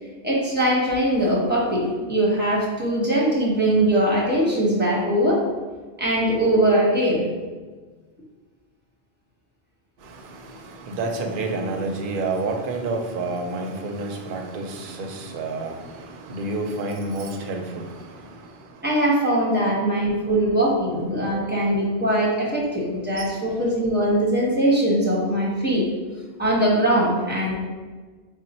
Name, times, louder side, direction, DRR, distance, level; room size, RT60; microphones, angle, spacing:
voice 1, 0.2-5.4 6.0-7.3 18.8-25.9 26.4-27.5, right 1 dB, 10° right, -5 dB, 0.8 m, -21 dB
voice 2, 10.0-18.8 23.2-23.3, right 3 dB, 60° right, 3 dB, 0.7 m, -30 dB
4.1 x 2.1 x 4.0 m, 1.4 s
omnidirectional pair, 1.2 m